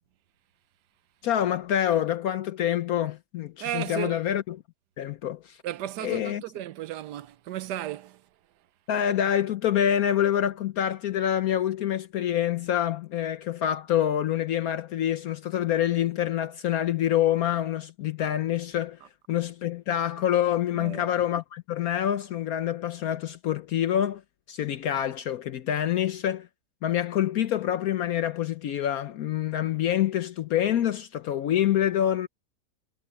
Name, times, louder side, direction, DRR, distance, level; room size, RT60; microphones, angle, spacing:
voice 1, 1.2-4.6 5.0-5.6 6.0-6.4 8.9-19.0 19.3-24.2 24.5-26.5 26.8-32.3, left 10 dB, 70° left, 1.1 m, -26 dB
voice 2, 3.6-4.2 5.6-8.2 20.7-21.1, right 13 dB, 90° right, 1.3 m, -34 dB
omnidirectional pair, 1.7 m